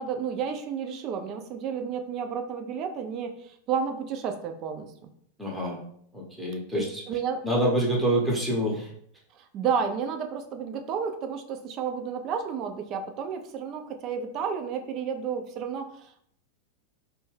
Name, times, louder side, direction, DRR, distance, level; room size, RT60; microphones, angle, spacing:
voice 1, 0.0-4.9 6.7-7.4 9.4-16.2, right 6 dB, 35° right, 6 dB, 0.4 m, -31 dB
voice 2, 5.4-5.8 6.1-7.0 7.4-8.9, right 1 dB, 5° right, -3 dB, 0.7 m, -26 dB
2.6 x 2.2 x 3.1 m, 0.66 s
figure-of-eight pair, 90°, 0 cm